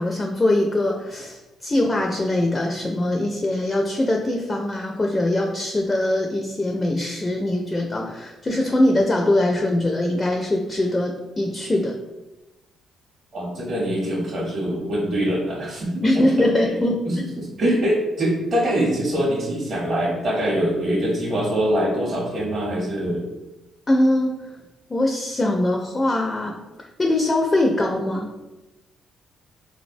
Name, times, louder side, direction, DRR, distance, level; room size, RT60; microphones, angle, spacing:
voice 1, 0.0-12.0 16.0-17.1 23.9-24.4 24.9-26.6 27.0-28.3, left 1 dB, 25° left, 1 dB, 0.4 m, -22 dB
voice 2, 13.3-16.8 17.0-23.3, equal, 40° right, -5 dB, 0.7 m, -24 dB
3.7 x 2.1 x 2.5 m, 1.0 s
cardioid pair, 90°, 0 cm